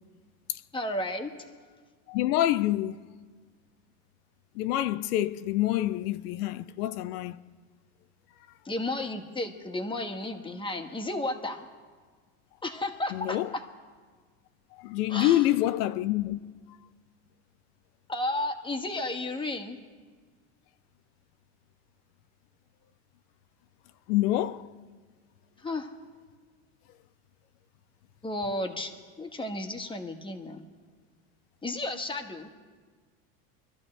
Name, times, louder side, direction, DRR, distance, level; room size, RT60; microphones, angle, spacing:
voice 1, 0.7-1.5 8.6-11.7 12.6-13.6 15.1-15.4 18.1-19.8 25.6-25.9 28.2-30.6 31.6-32.5, left 2 dB, 10° left, 1.4 m, -33 dB
voice 2, 2.1-3.0 4.6-7.4 13.1-13.5 14.8-16.5 24.1-24.7, left 14 dB, 80° left, 0.6 m, -27 dB
24.5 x 13.0 x 3.3 m
supercardioid pair, 110°, 45 cm